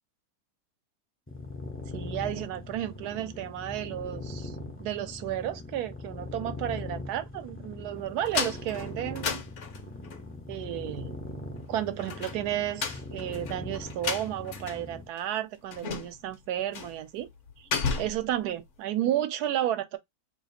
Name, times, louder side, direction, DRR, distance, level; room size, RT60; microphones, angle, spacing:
sound 1, 1.3-15.1, left 2 dB, 15° left, 0.4 m, -40 dB
voice 1, 1.9-4.5 4.8-9.4 10.5-11.2 11.7-17.3 17.6-17.7 18.0-20.0, right 12 dB, 75° right, 1.1 m, -32 dB
sound 2, 8.2-10.2 12.0-14.9 15.2-15.3 15.7-16.3 16.7-17.0 17.3-18.3, left 5 dB, 55° left, 0.9 m, -33 dB
2.8 x 2.4 x 4.0 m
omnidirectional pair, 1.8 m